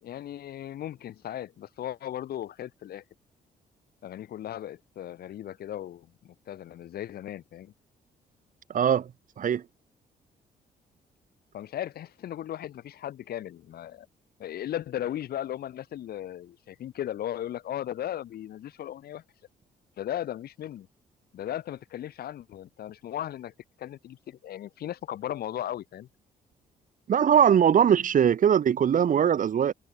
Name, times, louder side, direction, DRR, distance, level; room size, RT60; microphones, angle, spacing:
voice 1, 0.0-3.0 4.0-7.7 11.5-14.1 14.4-19.2 20.0-20.9 21.3-26.1, left 11 dB, 75° left, 4.5 m, -36 dB
voice 2, 8.7-9.1 9.4-9.6 27.1-29.7, right 8 dB, 55° right, 2.2 m, -21 dB
cardioid pair, 90°, 16 cm